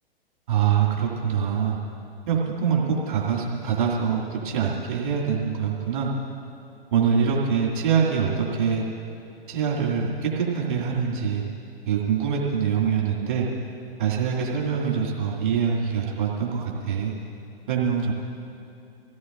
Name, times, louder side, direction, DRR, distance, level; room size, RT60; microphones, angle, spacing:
voice 1, 0.5-1.8 2.3-6.1 6.9-8.8 9.5-11.4 11.9-13.5 14.0-17.1 17.7-18.1, right 7 dB, 55° right, -3 dB, 2.7 m, -24 dB
25.5 x 16.5 x 2.7 m, 2.7 s
figure-of-eight pair, 110°, 30 cm